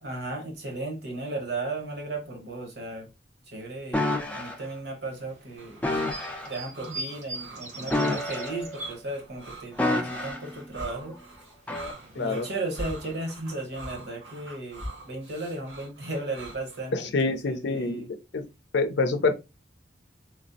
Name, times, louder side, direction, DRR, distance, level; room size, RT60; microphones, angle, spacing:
voice 1, 0.0-3.1 3.5-5.8 6.5-11.2 12.1-18.1, right 2 dB, 60° right, 1.0 m, -35 dB
sound 1, 3.9-4.6 5.8-6.5 7.9-8.8 9.8-10.5 11.7-11.9, left 2 dB, 5° left, 0.4 m, -28 dB
sound 2, 5.0-9.6 9.9-11.0 11.3-13.9, right 2 dB, 40° right, 0.6 m, -43 dB
sound 3, 5.6-16.8, right 1 dB, 85° right, 1.5 m, -43 dB
voice 2, 12.2-12.5 16.9-18.0 18.3-18.4 18.7-19.3, left 3 dB, 70° left, 0.5 m, -26 dB
3.2 x 2.0 x 2.6 m
head